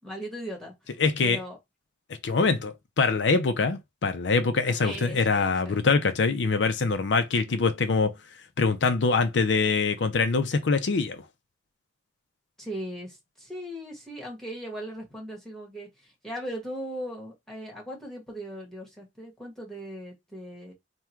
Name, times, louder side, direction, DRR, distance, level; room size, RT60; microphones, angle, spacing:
voice 1, 0.0-0.7 1.2-1.6 4.8-5.8 7.4-7.7 12.6-20.7, equal, ahead, 1.5 m, -38 dB
voice 2, 1.0-1.4 2.2-8.1 8.6-11.2, left 4 dB, 80° left, 0.5 m, -24 dB
3.5 x 2.3 x 4.4 m
head